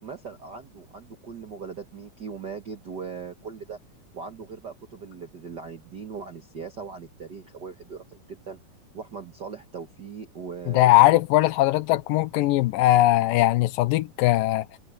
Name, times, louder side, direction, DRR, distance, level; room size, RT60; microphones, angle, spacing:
voice 1, 0.0-3.8 4.1-8.6 8.9-11.2, right 6 dB, 60° right, 1.1 m, -39 dB
voice 2, 10.7-14.7, left 16 dB, 90° left, 2.4 m, -20 dB
omnidirectional pair, 3.9 m